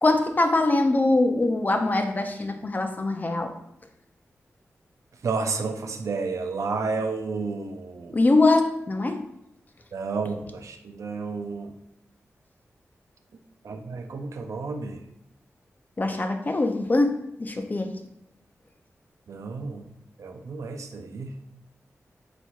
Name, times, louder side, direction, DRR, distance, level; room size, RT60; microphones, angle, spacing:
voice 1, 0.0-3.5 8.1-9.2 16.0-17.9, left 2 dB, 35° left, 5 dB, 0.5 m, -23 dB
voice 2, 5.2-8.2 9.9-11.7 13.6-15.0 19.3-19.9 20.2-21.3, right 4 dB, 80° right, 5 dB, 0.5 m, -31 dB
4.4 x 4.1 x 2.4 m, 0.83 s
cardioid pair, 70°, 5 cm